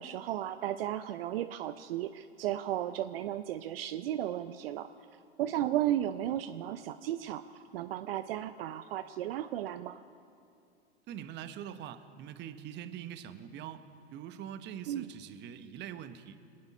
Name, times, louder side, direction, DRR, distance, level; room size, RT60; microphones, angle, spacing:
voice 1, 0.0-4.9 5.4-10.0 14.9-15.1, right 12 dB, 60° right, 10 dB, 0.6 m, -34 dB
voice 2, 11.1-13.8 14.1-16.4, right 10 dB, 35° right, 10 dB, 1.0 m, -43 dB
25.5 x 9.7 x 5.4 m, 2.5 s
hypercardioid pair, 105°, 33 cm